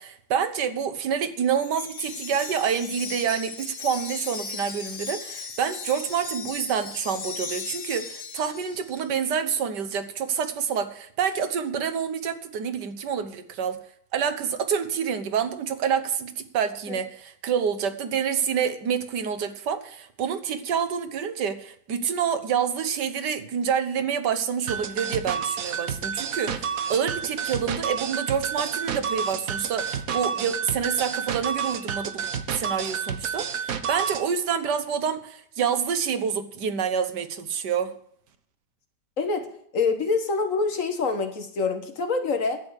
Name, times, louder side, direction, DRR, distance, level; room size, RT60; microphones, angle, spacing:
voice 1, 0.0-13.8 14.1-37.9, right 7 dB, 85° right, 10 dB, 1.7 m, -27 dB
Wind chime, 1.5-9.0, left 5 dB, 75° left, 2.4 m, -37 dB
sound 1, 24.7-34.3, right 7 dB, 60° right, 1.2 m, -30 dB
voice 2, 39.2-39.5 39.7-42.6, left 4 dB, 50° left, 7 dB, 1.7 m, -26 dB
11.0 x 8.2 x 8.1 m, 0.65 s
omnidirectional pair, 1.8 m